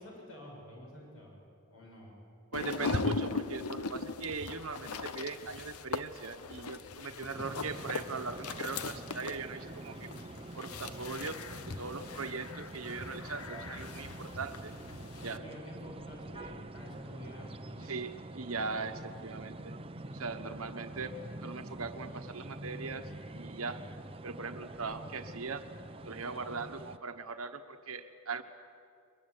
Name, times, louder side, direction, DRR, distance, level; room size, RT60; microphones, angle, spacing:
voice 1, 0.0-1.3 1.7-2.2 7.1-7.8 15.2-18.0 19.9-20.6, equal, 65° left, -1 dB, 7.2 m, -49 dB
sound 1, 2.5-15.4, left 4 dB, 90° left, 1.0 m, -39 dB
voice 2, 2.5-10.1 10.5-11.5 11.8-14.7 15.2-15.4 17.8-19.7 20.1-23.1 23.3-23.8 24.2-25.7 26.0-28.4, right 4 dB, 75° right, 6 dB, 1.2 m, -40 dB
sound 2, 7.3-27.0, right 2 dB, 25° right, 0.7 m, -46 dB
23.0 x 22.0 x 9.7 m, 2.5 s
head